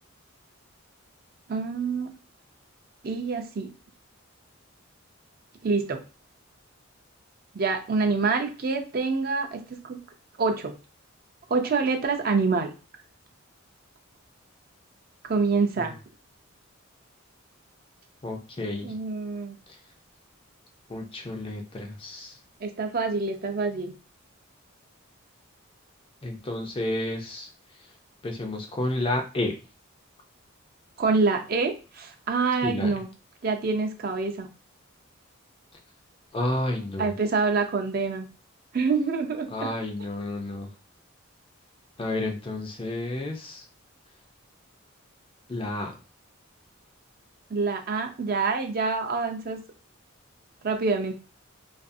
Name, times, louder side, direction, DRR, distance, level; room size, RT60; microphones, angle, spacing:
voice 1, 1.5-2.1 3.0-3.7 5.6-6.0 7.5-10.0 10.4-10.7 11.5-12.7 15.2-16.0 18.8-19.5 22.6-23.9 31.0-33.1 33.4-34.5 37.0-38.3 38.7-39.7 47.5-49.6 50.6-51.1, right 4 dB, 45° right, 4 dB, 0.5 m, -26 dB
voice 2, 18.2-18.9 20.9-22.4 26.2-27.5 28.2-29.5 32.6-32.9 36.3-37.1 39.5-40.7 42.0-43.6 45.5-45.9, left 1 dB, 25° left, 2 dB, 0.4 m, -31 dB
2.4 x 2.4 x 2.6 m, 0.33 s
head